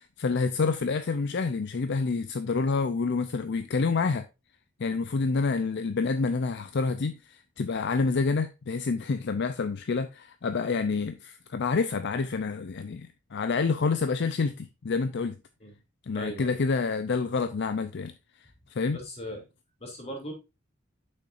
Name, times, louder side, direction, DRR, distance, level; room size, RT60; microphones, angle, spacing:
voice 1, 0.0-4.2 4.8-15.4 16.0-18.1 18.7-19.0, left 4 dB, 60° left, 0.5 m, -28 dB
voice 2, 16.1-16.6 18.9-19.4 19.8-20.3, equal, 30° left, 2.7 m, -38 dB
8.5 x 6.5 x 2.5 m
head